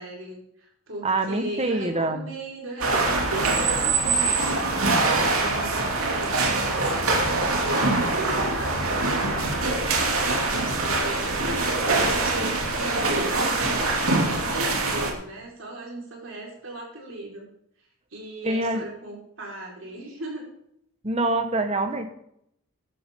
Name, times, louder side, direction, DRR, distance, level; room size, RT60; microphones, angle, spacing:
voice 1, 0.0-6.9 7.4-11.4 11.8-17.5 18.1-20.5, right 2 dB, 65° right, -1 dB, 4.7 m, -37 dB
voice 2, 1.0-2.2 7.8-7.9 18.4-18.8 21.0-22.1, right 2 dB, 30° right, 7 dB, 1.3 m, -25 dB
sound 1, 2.8-15.1, right 3 dB, 85° right, 2.7 m, -24 dB
15.0 x 12.0 x 3.8 m, 0.73 s
head